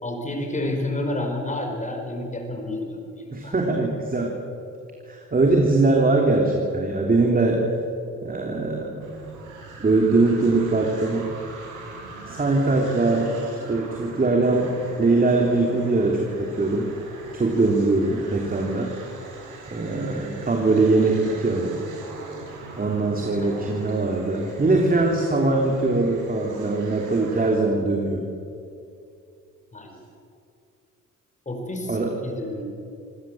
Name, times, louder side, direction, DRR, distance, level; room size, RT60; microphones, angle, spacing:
voice 1, 0.0-3.6 13.0-13.1 21.0-21.1 23.4-23.6 29.7-30.0 31.5-32.0 32.2-32.6, left 1 dB, 25° left, 3 dB, 5.4 m, -30 dB
voice 2, 3.3-4.3 5.1-7.6 8.2-9.1 9.8-11.3 12.3-13.4 13.7-16.9 17.3-18.9 19.7-21.8 22.8-28.2 31.9-32.1, right 3 dB, 30° right, 1 dB, 3.2 m, -21 dB
sound 1, 9.0-27.6, right 3 dB, 90° right, 5.9 m, -41 dB
26.0 x 16.5 x 7.8 m, 2.5 s
cardioid pair, 90°, 30 cm